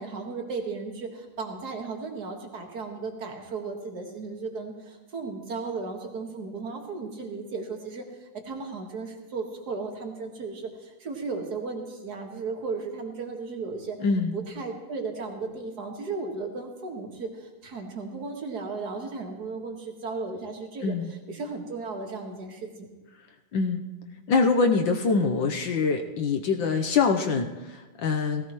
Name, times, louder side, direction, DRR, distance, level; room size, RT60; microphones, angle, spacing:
voice 1, 0.0-14.0 14.3-22.9, right 4 dB, 50° right, 2 dB, 2.2 m, -35 dB
voice 2, 14.0-14.4 20.8-21.1 23.5-23.9 24.3-28.5, left 4 dB, 65° left, 4 dB, 1.5 m, -24 dB
18.5 x 16.5 x 3.1 m, 1.2 s
omnidirectional pair, 2.4 m